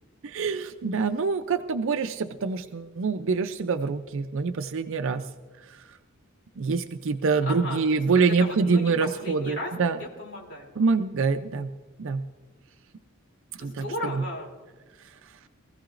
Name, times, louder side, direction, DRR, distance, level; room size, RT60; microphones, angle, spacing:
voice 1, 0.2-5.3 6.6-10.0 10.8-11.7 12.0-12.2 13.6-13.8, right 4 dB, 65° right, 8 dB, 0.5 m, -25 dB
voice 2, 7.4-8.0 8.3-9.7 10.0-10.7 13.6-14.5, left 1 dB, 60° left, -1 dB, 3.0 m, -36 dB
23.0 x 15.0 x 2.5 m, 1.3 s
head